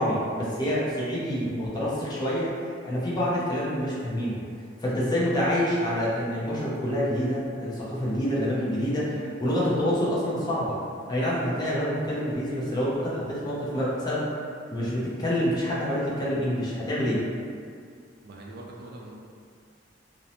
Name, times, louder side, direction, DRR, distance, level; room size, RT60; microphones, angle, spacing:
voice 1, 0.0-2.6 2.8-4.4 4.8-10.8 11.1-14.3 14.7-17.2, equal, 20° left, -7 dB, 0.5 m, -27 dB
voice 2, 18.2-19.1, right 2 dB, 55° right, -2 dB, 0.4 m, -43 dB
2.5 x 2.0 x 2.8 m, 2.3 s
head